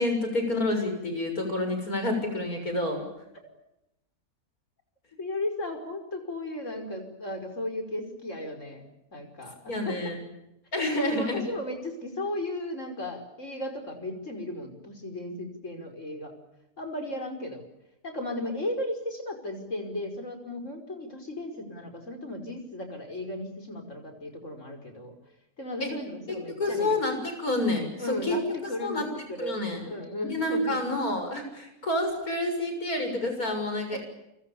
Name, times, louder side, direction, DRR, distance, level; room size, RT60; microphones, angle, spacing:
voice 1, 0.0-3.1 9.7-10.2 10.7-11.4 25.8-25.9 26.3-28.4 28.8-29.1 29.4-29.8 30.3-34.0, left 1 dB, 85° left, 5 dB, 7.3 m, -28 dB
voice 2, 5.2-8.8 9.1-10.1 10.9-16.3 16.8-17.6 18.0-25.2 25.6-27.0 28.0-28.4 28.7-29.6 29.8-30.8 33.9-34.0, left 1 dB, 55° left, 5 dB, 5.8 m, -35 dB
29.5 x 26.0 x 7.1 m, 0.87 s
omnidirectional pair, 1.5 m